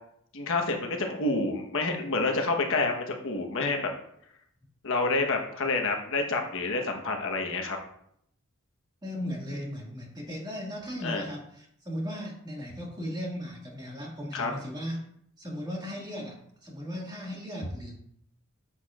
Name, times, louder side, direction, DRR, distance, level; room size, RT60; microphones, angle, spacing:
voice 1, 0.3-3.9 4.8-7.8 11.0-11.2 14.3-14.5, left 3 dB, 65° left, 3 dB, 1.2 m, -28 dB
voice 2, 9.0-15.0 15.4-17.9, equal, 20° right, -2 dB, 2.0 m, -37 dB
10.0 x 7.2 x 2.5 m, 0.70 s
head